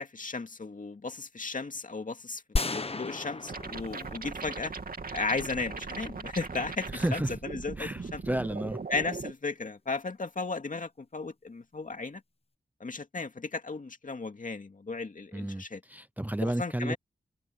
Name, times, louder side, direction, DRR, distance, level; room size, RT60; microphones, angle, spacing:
voice 1, 0.0-2.4 2.7-4.7 5.1-8.2 8.9-12.2 12.8-15.8 16.4-17.0, left 4 dB, 50° left, 2.4 m, -35 dB
sound 1, 2.6-4.8, left 3 dB, 35° left, 1.1 m, -34 dB
sound 2, 3.5-9.3, right 4 dB, 60° right, 2.5 m, -39 dB
voice 2, 6.9-7.3 7.8-8.8 15.3-16.9, right 1 dB, 10° right, 0.7 m, -32 dB
wide cardioid pair, 70°, 17 cm